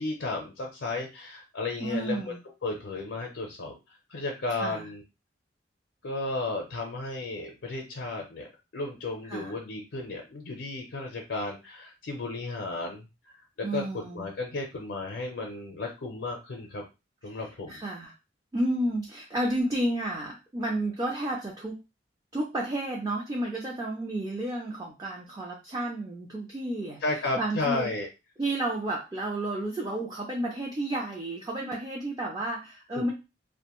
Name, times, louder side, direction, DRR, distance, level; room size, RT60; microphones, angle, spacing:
voice 1, 0.0-5.0 6.0-16.8 17.2-17.8 27.0-28.1 32.9-33.1, left 3 dB, 75° left, 1 dB, 0.5 m, -34 dB
voice 2, 1.8-2.4 4.6-4.9 9.3-9.5 13.6-14.3 17.3-17.4 17.7-18.1 18.5-21.8 22.3-27.0 27.4-27.9 28.4-33.1, right 1 dB, 20° right, -2 dB, 0.4 m, -31 dB
2.5 x 2.1 x 2.9 m, 0.27 s
head